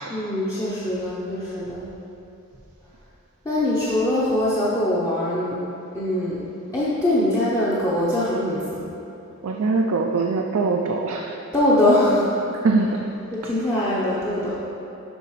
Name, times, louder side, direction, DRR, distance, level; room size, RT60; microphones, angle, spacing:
voice 1, 0.1-1.9 3.4-5.6 5.9-6.4 6.7-8.9 11.5-12.3 13.3-14.5, left 1 dB, 15° left, -9 dB, 0.7 m, -22 dB
voice 2, 9.4-11.4 12.6-12.9, right 4 dB, 65° right, 1 dB, 0.4 m, -22 dB
11.5 x 3.9 x 3.1 m, 2.9 s
head